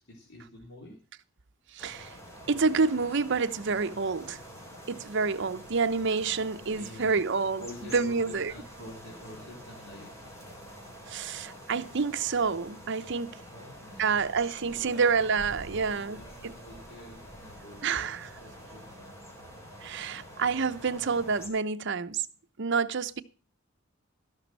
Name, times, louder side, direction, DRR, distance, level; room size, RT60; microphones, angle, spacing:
voice 1, 0.1-1.0 6.7-7.2 7.6-10.5 13.5-15.3 15.9-18.1 18.4-19.1, left 1 dB, 60° left, 3.2 m, -48 dB
voice 2, 1.7-2.1 2.5-4.4 4.9-7.6 7.9-8.5 11.1-13.4 14.0-16.5 17.8-18.3 19.8-22.3 22.6-23.2, right 5 dB, 60° right, 0.7 m, -28 dB
sound 1, 1.8-21.5, equal, 15° left, 3.9 m, -47 dB
15.5 x 6.2 x 7.4 m
head